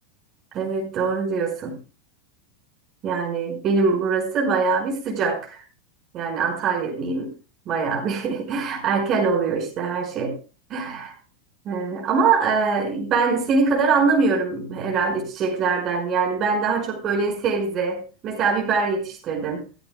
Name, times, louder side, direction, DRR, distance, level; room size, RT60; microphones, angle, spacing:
voice 1, 0.5-1.8 3.0-5.6 6.1-7.3 7.7-10.3 10.7-11.1 11.7-19.6, right 4 dB, 40° right, 5.3 m, -23 dB
16.0 x 15.0 x 2.2 m
figure-of-eight pair, 90°, 0 cm